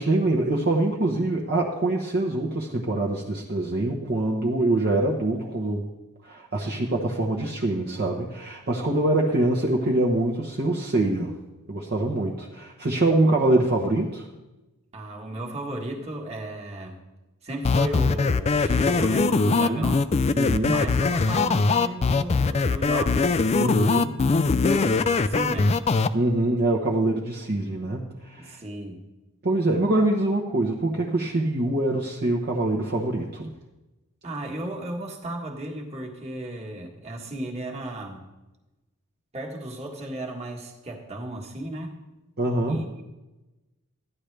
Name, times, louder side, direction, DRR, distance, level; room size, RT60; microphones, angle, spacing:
voice 1, 0.0-5.9 6.2-11.3 11.7-14.3 19.4-19.9 20.3-20.8 23.6-24.2 26.1-28.6 29.4-33.5 42.4-42.9, right 2 dB, 45° right, -2 dB, 1.0 m, -24 dB
voice 2, 14.9-17.0 17.4-20.0 20.7-24.1 24.6-25.7 28.3-29.0 34.2-38.2 39.3-42.0 42.7-43.0, right 1 dB, 30° right, 0 dB, 1.6 m, -35 dB
sound 1, 17.6-26.1, left 4 dB, 30° left, 0.3 m, -21 dB
13.5 x 10.5 x 3.3 m, 1.1 s
head